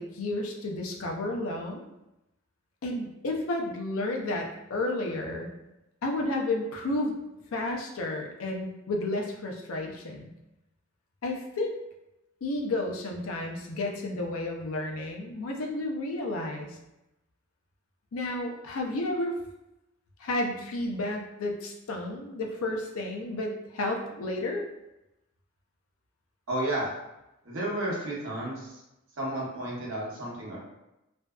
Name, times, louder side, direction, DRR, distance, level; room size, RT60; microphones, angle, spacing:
voice 1, 0.0-1.8 2.8-5.5 6.0-7.2 7.5-10.3 11.2-11.8 12.4-16.7 18.1-19.3 20.2-24.7, left 2 dB, 90° left, 1 dB, 0.5 m, -32 dB
voice 2, 26.5-26.9 27.4-28.8 29.2-30.6, right 1 dB, 70° right, -5 dB, 0.8 m, -32 dB
2.5 x 2.3 x 2.2 m, 0.93 s
head